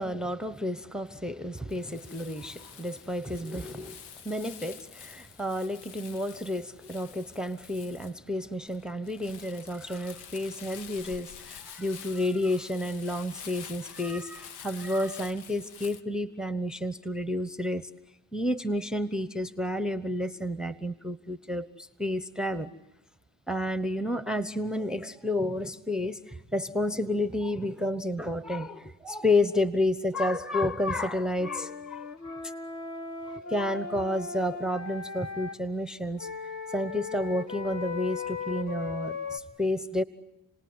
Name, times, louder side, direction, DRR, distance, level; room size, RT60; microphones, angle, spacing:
voice 1, 0.0-17.9 18.3-22.7 23.5-32.4 33.3-36.3 36.7-40.0, left 1 dB, ahead, 13 dB, 1.1 m, -31 dB
Crumpling crinkling, 1.7-16.0, left 8 dB, 80° left, 1.2 m, -48 dB
Wind instrument woodwind instrument, 31.4-35.6 36.2-39.4, left 5 dB, 45° left, 2.9 m, -37 dB
29.5 x 19.5 x 9.7 m, 0.92 s
supercardioid pair, 70°, 40 cm